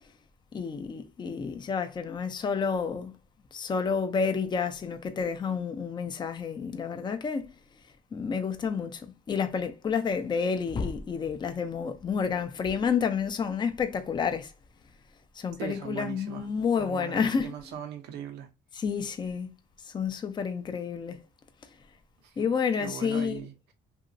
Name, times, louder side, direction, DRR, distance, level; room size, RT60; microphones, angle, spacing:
voice 1, 0.5-3.1 3.5-7.5 8.1-9.0 9.3-14.5 15.4-17.5 18.8-19.5 19.9-21.2 22.4-23.4, left 6 dB, 25° left, 0.5 m, -29 dB
voice 2, 15.6-16.5 16.7-18.5 22.2-23.7, right 8 dB, 85° right, 0.7 m, -40 dB
2.9 x 2.6 x 2.5 m
cardioid pair, 110°, 17 cm